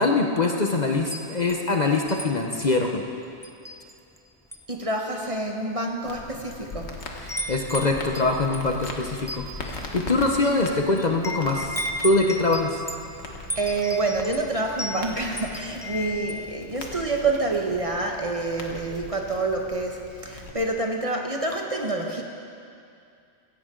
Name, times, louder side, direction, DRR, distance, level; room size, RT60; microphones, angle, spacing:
voice 1, 0.0-3.0 7.2-12.8, left 3 dB, 40° left, 2 dB, 0.9 m, -23 dB
Wind chime, 1.0-2.3 2.6-2.9 3.4-4.2 4.4-4.8 5.5-5.6 6.3-6.7 7.0-16.5, equal, 5° left, 0.4 m, -35 dB
voice 2, 4.7-7.0 13.6-22.2, right 2 dB, 30° right, 1 dB, 1.1 m, -27 dB
Crackle, 6.0-20.5, left 2 dB, 65° left, 1.5 m, -40 dB
16.0 x 16.0 x 3.8 m, 2.5 s
omnidirectional pair, 1.2 m